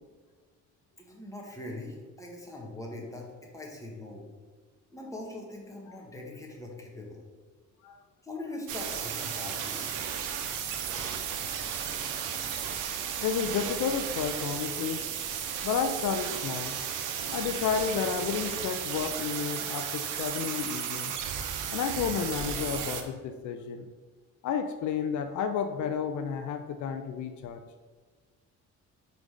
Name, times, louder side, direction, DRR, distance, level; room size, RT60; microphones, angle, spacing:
voice 1, 1.0-3.3 3.5-4.2 4.9-7.2 8.2-10.0, left 2 dB, 10° left, -2 dB, 1.5 m, -41 dB
sound 1, 8.7-23.0, right 8 dB, 85° right, 0.7 m, -34 dB
voice 2, 13.2-15.0 15.6-16.8 17.3-21.1 21.7-23.9 24.4-27.6, left 7 dB, 75° left, 7 dB, 0.5 m, -31 dB
4.9 x 4.0 x 4.9 m, 1.4 s
cardioid pair, 90°, 30 cm